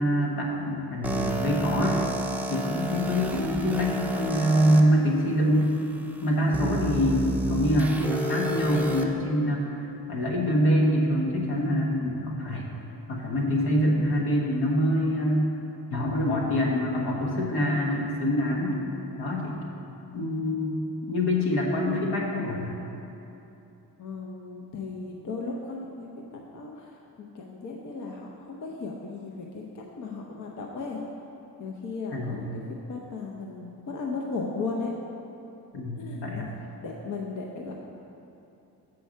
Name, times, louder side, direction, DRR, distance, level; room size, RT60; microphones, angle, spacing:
voice 1, 0.0-2.0 2.5-5.7 6.2-9.6 10.1-12.7 13.1-15.5 15.9-18.8 19.2-19.6 20.1-20.8 21.0-22.7 32.1-32.3 35.7-36.5, equal, 80° left, -2 dB, 1.5 m, -25 dB
sound 1, 1.0-4.8 5.5-5.6 6.5-9.0, right 1 dB, 5° right, 0.5 m, -30 dB
voice 2, 24.0-31.0 31.6-32.6 32.9-34.9 36.0-36.4 36.8-37.8, left 4 dB, 50° left, -1 dB, 0.8 m, -36 dB
7.7 x 4.6 x 6.4 m, 2.9 s
cardioid pair, 115°, 38 cm